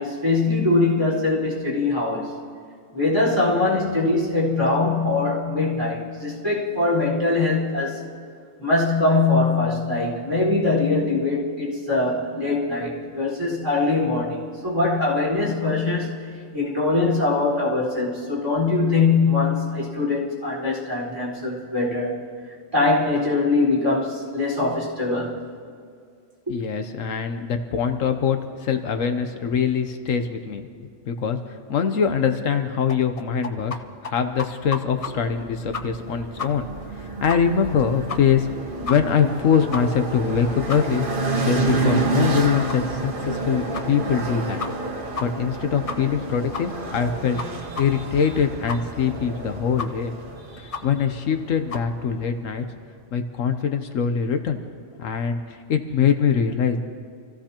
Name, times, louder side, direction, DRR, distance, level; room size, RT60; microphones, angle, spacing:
voice 1, 0.0-2.3 2.9-8.0 8.6-16.1 16.5-22.2 22.7-25.4 26.5-26.6 50.6-50.8, left 3 dB, 20° right, -7 dB, 4.6 m, -22 dB
voice 2, 26.5-30.7 31.1-33.8 34.0-36.7 36.9-38.5 38.8-41.1 41.3-44.7 45.2-47.4 47.8-50.1 50.8-52.6 53.1-54.6 55.0-56.8, left 7 dB, 75° left, 7 dB, 1.2 m, -23 dB
sound 1, 32.9-33.8 34.0-34.1 34.4-35.1 35.4-35.5 35.7-36.1 36.4-36.5 36.8-36.9 37.3-37.4 37.7-37.8 38.1-38.4 38.9-39.0 39.3-39.4 39.7-39.8 40.2-40.3 40.7-40.8 41.2-41.3 41.7-41.8 42.1-42.2 42.7-42.8 43.2-43.3 43.7-43.8 44.2-44.3 44.6-44.9 45.1-45.2 45.5-45.6 45.9-46.2 46.5-46.6 47.0-47.1 47.4-47.5 47.7-47.8 48.2-48.3 48.7-48.8 49.2-49.3 49.8-49.9 50.2-50.3 50.7-50.8 51.2-51.3 51.7-51.8, left 4 dB, 40° left, 0.5 m, -31 dB
sound 2, 34.9-52.3, right 2 dB, 40° right, 1.4 m, -29 dB
27.0 x 15.5 x 2.9 m, 2.1 s
omnidirectional pair, 1.4 m